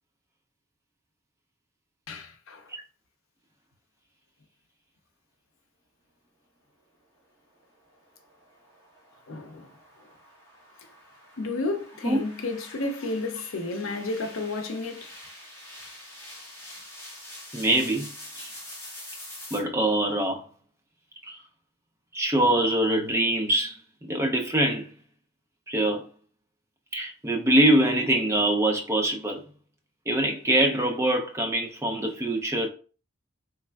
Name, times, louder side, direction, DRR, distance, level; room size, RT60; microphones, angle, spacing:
voice 1, 2.1-2.7 9.3-9.7 11.4-15.1, left 2 dB, 65° left, 0.6 m, -32 dB
sound 1, 7.5-19.6, left 1 dB, 10° left, 1.5 m, -46 dB
voice 2, 17.5-18.1 18.4-18.5 19.5-20.4 21.3-21.4 22.1-23.8 24.1-24.9 25.7-26.1 26.9-29.4 30.1-32.7, right 1 dB, 15° right, 0.4 m, -24 dB
3.5 x 3.2 x 2.3 m
head